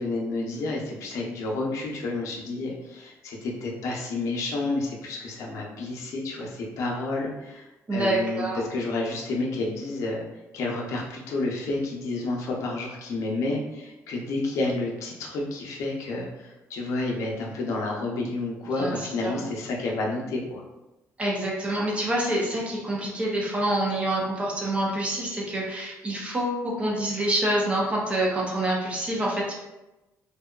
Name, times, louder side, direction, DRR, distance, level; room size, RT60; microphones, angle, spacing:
voice 1, 0.0-10.2 10.5-20.6, left 2 dB, 70° left, -2 dB, 0.6 m, -30 dB
voice 2, 7.9-8.6 18.8-19.4 21.2-29.5, right 1 dB, 20° right, -3 dB, 0.5 m, -27 dB
2.7 x 2.2 x 2.3 m, 1.0 s
cardioid pair, 130°, 6 cm